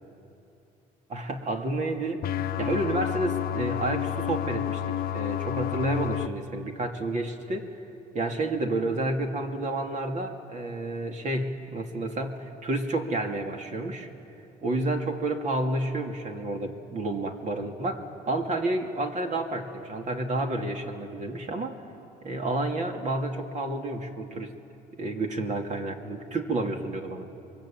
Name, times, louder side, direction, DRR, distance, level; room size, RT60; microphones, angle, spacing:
voice 1, 1.1-2.2 2.6-7.7 8.1-14.1 14.6-21.8 22.2-24.5 25.0-27.3, right 2 dB, 45° right, 3 dB, 2.7 m, -30 dB
sound 1, 2.2-6.3, left 11 dB, 60° left, 0.9 m, -30 dB
29.5 x 23.0 x 8.9 m, 2.7 s
cardioid pair, 110°, 17 cm